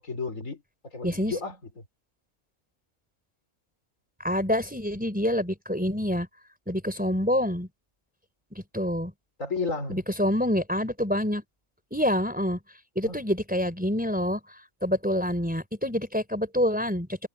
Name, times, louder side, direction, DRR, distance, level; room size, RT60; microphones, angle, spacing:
voice 1, 0.0-1.8 9.4-10.0 13.1-13.2, left 4 dB, 60° left, 4.8 m, -33 dB
voice 2, 1.0-1.3 4.2-6.3 6.7-7.7 8.5-9.1 9.9-11.4 11.9-12.6 13.0-14.4 14.8-17.3, equal, 5° right, 4.0 m, -27 dB
omnidirectional pair, 1.5 m